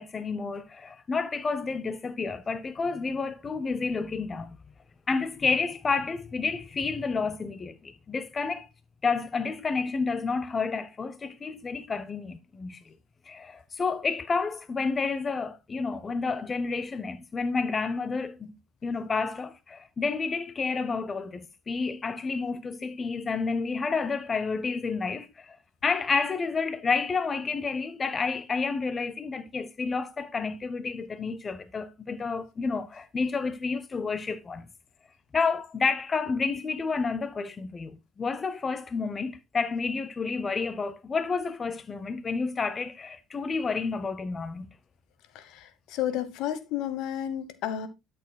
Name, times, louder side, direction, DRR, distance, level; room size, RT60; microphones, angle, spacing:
voice 1, 0.0-4.6 5.1-8.7 9.0-13.0 13.3-18.5 18.8-25.6 25.8-34.7 35.3-44.7, left 4 dB, 35° left, 0.8 m, -30 dB
voice 2, 45.3-47.9, left 10 dB, 75° left, 1.1 m, -32 dB
12.0 x 6.9 x 2.3 m
supercardioid pair, 75°, 0 cm